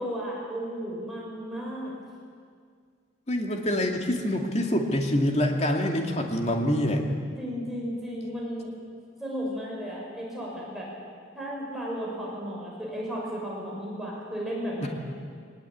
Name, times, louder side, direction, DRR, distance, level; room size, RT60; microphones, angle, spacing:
voice 1, 0.0-1.9 7.4-8.7 9.2-10.9 11.3-14.9, equal, ahead, -5 dB, 6.3 m, -34 dB
voice 2, 3.3-7.0 14.8-14.9, left 1 dB, 35° left, 2 dB, 2.6 m, -25 dB
22.5 x 20.5 x 8.7 m, 2.1 s
head